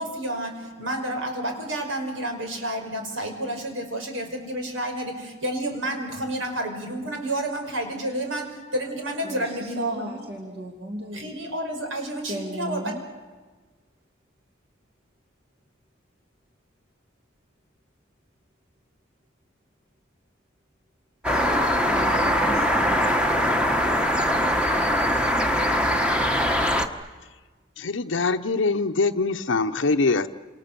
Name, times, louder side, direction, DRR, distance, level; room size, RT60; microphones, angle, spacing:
voice 1, 0.0-10.2 11.1-13.0, right 1 dB, 90° right, 4 dB, 5.5 m, -30 dB
voice 2, 9.2-11.4 12.3-13.0 21.9-23.1, right 1 dB, 55° right, 1 dB, 2.6 m, -34 dB
sound 1, 21.2-26.9, equal, 5° right, 1.2 m, -22 dB
voice 3, 27.8-30.3, left 3 dB, 80° left, 6 dB, 0.8 m, -23 dB
28.5 x 27.5 x 6.8 m, 1.3 s
head